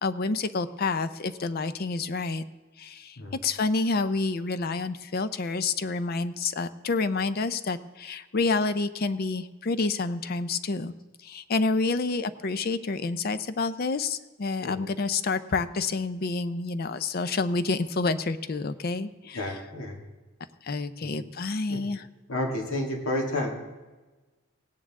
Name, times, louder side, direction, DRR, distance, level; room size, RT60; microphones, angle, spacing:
voice 1, 0.0-2.4 2.8-10.9 11.2-19.4 20.6-22.1, left 3 dB, 45° left, 12 dB, 0.5 m, -28 dB
voice 2, 19.3-20.0 21.7-21.8 22.3-23.6, left 1 dB, 80° left, 1 dB, 2.1 m, -30 dB
17.0 x 9.4 x 3.6 m, 1.2 s
head